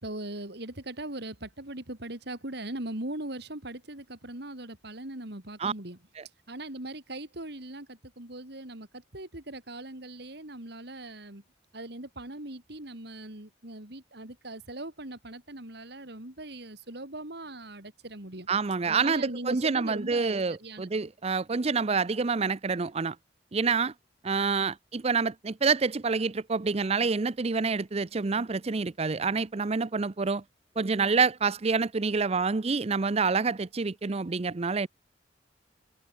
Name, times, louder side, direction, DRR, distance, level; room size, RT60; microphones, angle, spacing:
voice 1, 0.0-6.0 6.5-11.4 11.7-18.5 18.9-20.9, right 1 dB, 60° right, 3.5 m, -40 dB
voice 2, 18.5-23.2 23.5-23.9 24.2-30.4 30.8-34.9, right 4 dB, 35° right, 0.6 m, -27 dB
head